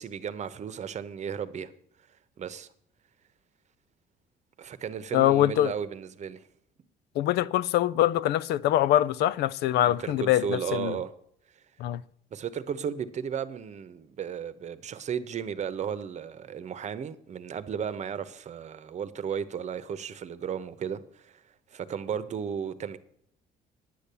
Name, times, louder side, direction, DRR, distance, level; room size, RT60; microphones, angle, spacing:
voice 1, 0.0-1.7 2.4-2.7 4.6-6.4 9.8-11.1 12.3-21.4 21.7-23.0, right 7 dB, 45° right, 0.9 m, -34 dB
voice 2, 5.1-5.7 7.2-11.0 11.8-12.0, left 13 dB, 75° left, 0.5 m, -24 dB
10.0 x 8.5 x 6.8 m
cardioid pair, 110°, 17 cm